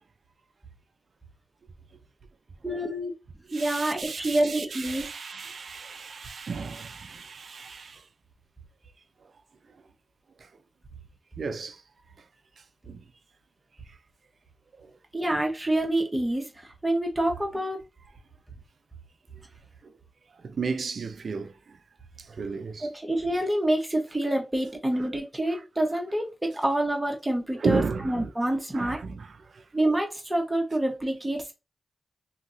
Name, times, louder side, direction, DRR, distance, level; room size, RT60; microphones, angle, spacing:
voice 1, 2.6-3.1 3.5-5.1 15.1-17.8 22.8-29.0 29.7-31.5, right 1 dB, 15° right, 1.2 m, -27 dB
voice 2, 3.5-8.1 10.4-10.5 11.4-11.8 12.8-13.1 13.9-14.0 14.8-14.9 19.8-19.9 20.4-21.8 22.2-22.9 25.5-25.6 27.5-28.3 28.7-29.7, right 4 dB, 70° right, 0.4 m, -33 dB
2.8 x 2.8 x 2.7 m
cardioid pair, 45°, 0 cm